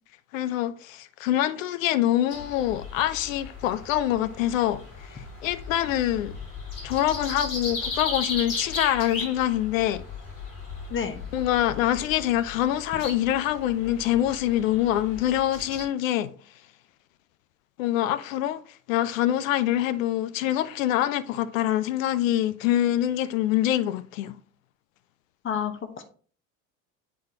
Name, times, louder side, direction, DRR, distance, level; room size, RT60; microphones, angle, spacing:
voice 1, 0.3-6.3 6.8-10.0 11.3-16.3 17.8-18.6 18.9-24.4, left 12 dB, 70° left, 0.5 m, -25 dB
sound 1, 2.3-15.8, left 4 dB, 50° left, 3.0 m, -37 dB
voice 2, 10.9-11.2 25.4-26.0, left 7 dB, 30° left, 1.1 m, -30 dB
8.3 x 4.1 x 2.9 m
hypercardioid pair, 65°, 41 cm